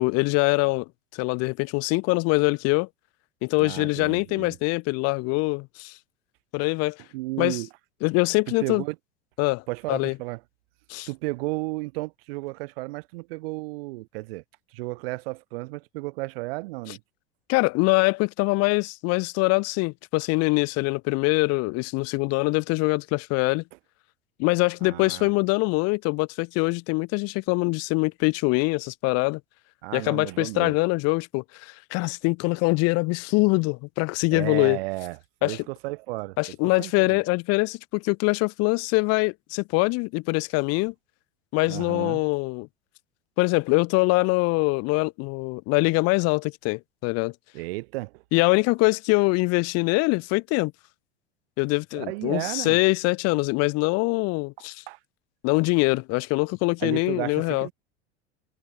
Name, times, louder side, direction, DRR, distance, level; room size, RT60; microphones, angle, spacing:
voice 1, 0.0-2.9 3.4-6.0 6.5-7.0 7.4-7.6 8.0-8.8 9.4-9.6 9.9-10.1 10.9-11.1 17.5-23.6 24.4-29.4 29.9-34.8 35.4-35.6 36.4-40.9 41.5-42.7 43.4-47.3 48.3-50.7 51.6-54.8 55.4-57.7, left 26 dB, 45° left, 1.6 m, -23 dB
voice 2, 3.6-4.6 7.1-7.7 8.5-9.0 9.7-10.4 11.1-14.4 14.7-17.0 24.8-25.3 29.8-30.8 34.3-36.4 36.8-37.2 41.7-42.2 47.5-48.2 51.9-52.8 54.6-55.0 56.8-57.7, right 23 dB, 55° right, 5.9 m, -33 dB
figure-of-eight pair, 80°, 34 cm